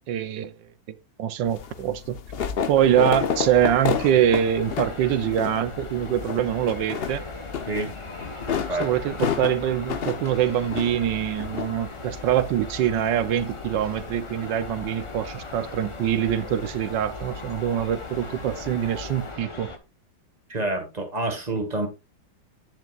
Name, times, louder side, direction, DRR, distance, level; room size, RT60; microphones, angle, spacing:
voice 1, 0.1-0.5 1.2-2.2 2.7-7.2 8.8-19.7, right 10 dB, 75° right, 1.5 m, -24 dB
sound 1, 1.4-19.3, left 7 dB, 70° left, 0.5 m, -33 dB
sound 2, 2.7-19.8, left 2 dB, 25° left, 0.7 m, -39 dB
voice 2, 8.5-8.9 20.5-21.9, right 2 dB, 20° right, 1.9 m, -28 dB
10.5 x 9.2 x 2.4 m
omnidirectional pair, 2.0 m